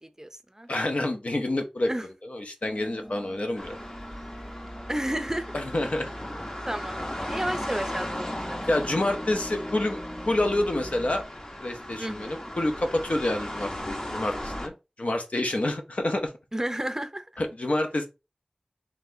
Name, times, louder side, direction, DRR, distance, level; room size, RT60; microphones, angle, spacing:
voice 1, 0.0-0.7 1.9-2.0 4.9-5.6 6.7-8.6 12.0-12.5 16.5-17.3, right 1 dB, 20° right, 0.5 m, -32 dB
voice 2, 0.7-1.9 2.2-3.8 5.5-6.1 8.7-11.2 11.6-14.7 15.0-16.3 17.4-18.1, left 1 dB, 75° left, 0.8 m, -28 dB
sound 1, 2.6-11.2, equal, 5° left, 0.9 m, -42 dB
sound 2, 3.6-14.7, left 1 dB, 35° left, 0.8 m, -37 dB
4.1 x 3.3 x 2.7 m
wide cardioid pair, 55°, 2 cm